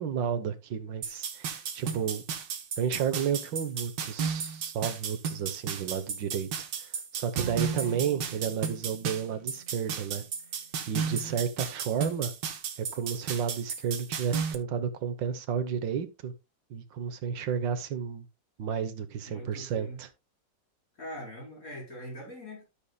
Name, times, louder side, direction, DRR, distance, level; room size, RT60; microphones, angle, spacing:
voice 1, 0.0-2.2 2.8-6.5 6.8-10.2 10.9-12.3 12.8-16.3 16.7-18.3 18.6-20.1, right 7 dB, 90° right, 1.8 m, -32 dB
sound 1, 1.0-14.5, right 6 dB, 70° right, 1.8 m, -34 dB
Bowed string instrument, 7.4-10.5, right 6 dB, 55° right, 0.6 m, -42 dB
voice 2, 7.6-8.0 11.0-11.4 19.3-20.0 21.0-22.6, equal, 50° left, 4.8 m, -42 dB
13.0 x 6.8 x 2.3 m
omnidirectional pair, 2.0 m